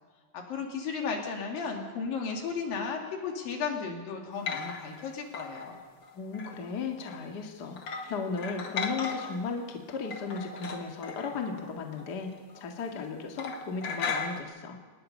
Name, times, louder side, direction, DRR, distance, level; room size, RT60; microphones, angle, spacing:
voice 1, 0.3-5.8, left 5 dB, 75° left, 2 dB, 4.2 m, -34 dB
sound 1, 4.3-5.1 5.3-6.7 7.1-7.2 7.8-9.5 9.9-12.2 12.5-12.6 12.9-13.1 13.4-14.4, left 5 dB, 55° left, 1.4 m, -37 dB
voice 2, 6.1-14.8, left 4 dB, 35° left, 2 dB, 1.9 m, -36 dB
26.5 x 19.5 x 5.5 m, 1.4 s
omnidirectional pair, 4.1 m